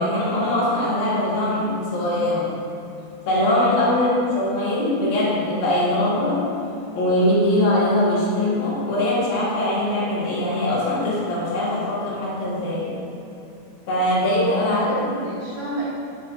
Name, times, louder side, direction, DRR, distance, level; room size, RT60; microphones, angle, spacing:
voice 1, 0.0-2.5 3.3-4.1 4.4-6.4 7.0-12.9 13.9-14.9, left 1 dB, 65° left, -7 dB, 3.5 m, -21 dB
voice 2, 3.9-4.5 14.7-15.9, right 1 dB, 70° right, -10 dB, 3.2 m, -29 dB
8.5 x 7.1 x 3.6 m, 2.7 s
omnidirectional pair, 4.9 m